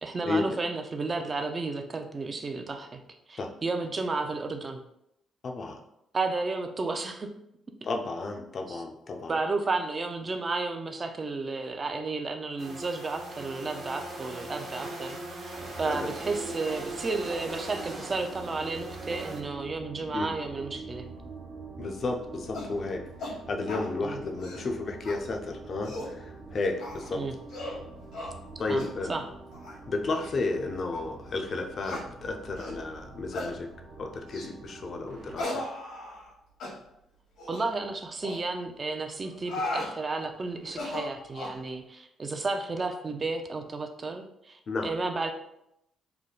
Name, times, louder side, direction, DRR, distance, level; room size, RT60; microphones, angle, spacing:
voice 1, 0.0-3.0 3.3-4.8 6.1-7.3 8.7-8.8 9.3-21.1 24.0-24.2 27.1-27.3 28.7-29.2 37.5-45.3, right 3 dB, 35° right, 5 dB, 0.5 m, -32 dB
voice 2, 5.4-5.8 7.8-9.4 15.8-16.1 20.1-20.3 21.8-27.2 28.6-29.1 29.9-33.7 34.0-35.6 44.7-44.9, left 3 dB, 50° left, 3 dB, 0.5 m, -32 dB
sound 1, 12.6-19.4, right 1 dB, 55° right, 0.9 m, -40 dB
sound 2, 15.5-35.4, right 3 dB, 85° right, 1.0 m, -45 dB
sound 3, 22.5-22.7 23.2-23.4 23.7-23.9 24.3-24.7 25.0-25.2 25.6-26.1 26.8-27.1 27.5-27.8 28.1-28.3 28.8-28.9 29.5-29.8 30.2-30.3 30.9-31.0 31.8-32.0 32.6-32.8 33.3-33.5 34.3-34.5 35.4-36.3 36.6-36.7 37.4-37.7 38.2-38.4 39.2-39.9 40.6-41.6, left 2 dB, 85° left, 1.3 m, -36 dB
3.4 x 2.2 x 3.8 m, 0.79 s
cardioid pair, 90°, 0 cm